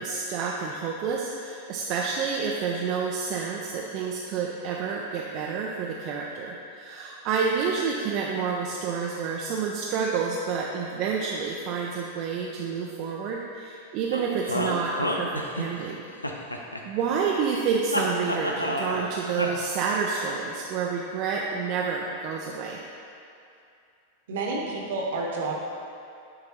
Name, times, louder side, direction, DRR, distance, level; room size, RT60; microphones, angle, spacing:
voice 1, 0.0-16.0 16.5-22.8, right 5 dB, 40° right, -2 dB, 0.5 m, -29 dB
sound 1, 14.1-15.9 16.2-17.3 17.9-19.1 19.4-19.5, left 1 dB, 85° left, 0.5 m, -29 dB
voice 2, 24.3-25.5, right 3 dB, 55° right, -1 dB, 1.1 m, -29 dB
10.5 x 3.8 x 3.0 m, 2.5 s
figure-of-eight pair, 90°, 0 cm